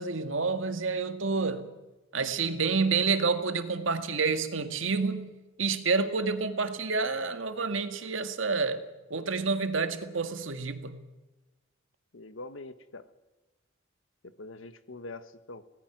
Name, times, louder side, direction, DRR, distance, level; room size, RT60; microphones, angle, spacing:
voice 1, 0.0-1.7 2.1-5.3 5.6-8.8 9.1-11.0, right 4 dB, 80° right, 1.8 m, -29 dB
voice 2, 12.1-13.1 14.2-15.6, left 2 dB, 85° left, 1.4 m, -44 dB
26.0 x 18.0 x 6.0 m
head